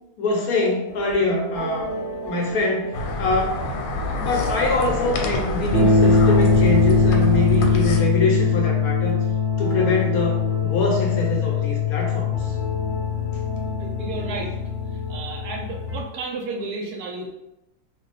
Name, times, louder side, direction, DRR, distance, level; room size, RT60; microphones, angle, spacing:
voice 1, 0.2-1.9 2.2-3.7 4.2-9.2 9.6-12.5, left 2 dB, 65° left, 0 dB, 1.0 m, -24 dB
sound 1, 1.1-16.0, left 4 dB, 35° left, 0.9 m, -22 dB
sound 2, 2.9-8.0, left 2 dB, 85° left, 1.3 m, -27 dB
voice 2, 13.8-14.5 14.9-17.3, right 3 dB, 70° right, 1 dB, 1.0 m, -32 dB
2.7 x 2.3 x 3.9 m, 0.93 s
omnidirectional pair, 1.9 m